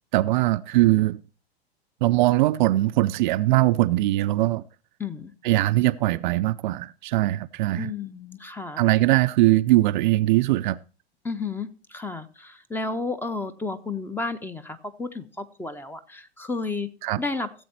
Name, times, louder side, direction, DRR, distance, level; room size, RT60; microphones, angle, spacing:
voice 1, 0.1-1.2 2.0-4.6 5.4-7.9 8.8-10.8 17.0-17.2, right 17 dB, 50° right, 0.5 m, -21 dB
voice 2, 5.0-5.3 7.8-8.8 11.2-16.9 17.2-17.6, left 3 dB, 5° left, 0.7 m, -32 dB
15.5 x 7.7 x 4.3 m
figure-of-eight pair, 100°, 32 cm